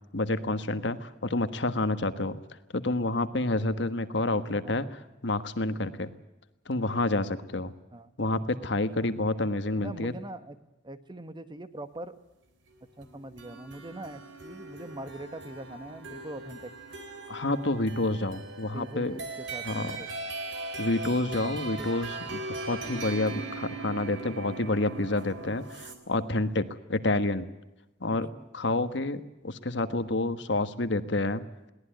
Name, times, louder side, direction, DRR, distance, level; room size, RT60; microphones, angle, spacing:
voice 1, 0.1-2.4 2.7-6.1 6.7-7.7 8.2-10.1 17.3-19.2 19.6-20.0 20.8-27.5 28.0-28.3 28.5-31.4, left 2 dB, 65° left, 11 dB, 1.4 m, -29 dB
voice 2, 9.8-10.6 10.8-12.2 13.0-16.7 18.6-20.1 21.6-21.9 28.1-28.5, right 1 dB, 25° right, 11 dB, 1.3 m, -42 dB
sound 1, 13.0-26.0, right 3 dB, 75° right, 3.8 m, -40 dB
22.0 x 18.0 x 9.1 m, 0.98 s
head